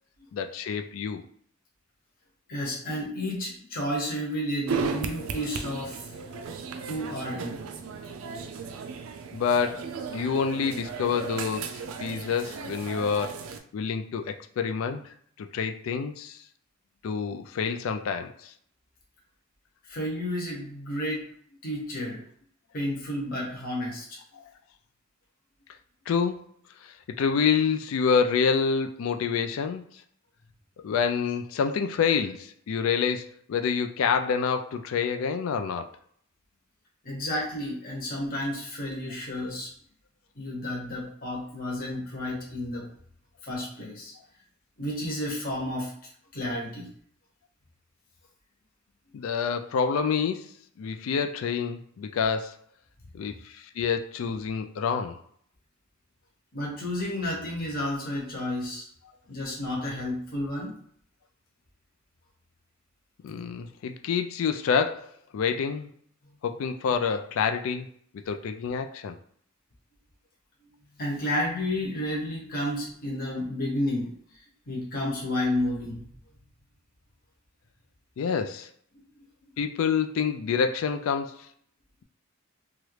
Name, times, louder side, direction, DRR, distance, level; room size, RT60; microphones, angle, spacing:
voice 1, 0.3-1.2 6.3-6.5 9.3-9.9 10.1-15.0 15.4-16.4 17.0-18.5 24.3-24.4 26.1-26.5 26.8-29.8 30.8-35.9 49.1-52.6 53.1-55.2 63.2-65.9 66.4-67.9 68.3-69.1 78.2-78.7 79.6-81.5, left 6 dB, 75° left, 7 dB, 0.3 m, -27 dB
voice 2, 2.5-6.1 6.9-7.6 19.9-21.3 21.6-22.2 22.7-24.2 37.0-39.7 40.4-42.9 43.4-44.1 44.8-45.9 46.3-46.9 56.5-58.9 59.3-60.7 70.6-70.7 71.0-74.1 74.7-76.0, left 1 dB, 45° left, -3 dB, 0.9 m, -31 dB
sound 1, 4.7-13.6, right 5 dB, 90° right, 0.4 m, -35 dB
3.0 x 2.4 x 3.1 m, 0.63 s
head